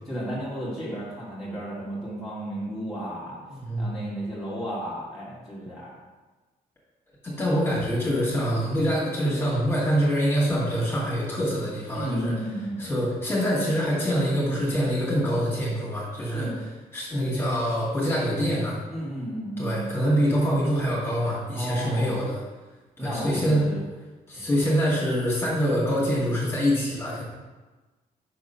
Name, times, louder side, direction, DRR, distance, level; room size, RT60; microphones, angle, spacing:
voice 1, 0.1-3.4 3.8-6.0 11.9-12.8 16.3-16.5 18.9-19.9 21.5-22.2 23.0-23.8 24.4-24.5, right 1 dB, ahead, -9 dB, 1.9 m, -33 dB
voice 2, 3.5-4.0 7.2-12.3 12.8-16.5 16.9-18.8 19.6-22.4 23.0-23.6 24.3-27.2, equal, 15° left, -6 dB, 2.0 m, -25 dB
5.8 x 3.6 x 5.7 m, 1.2 s
cardioid pair, 130°, 15 cm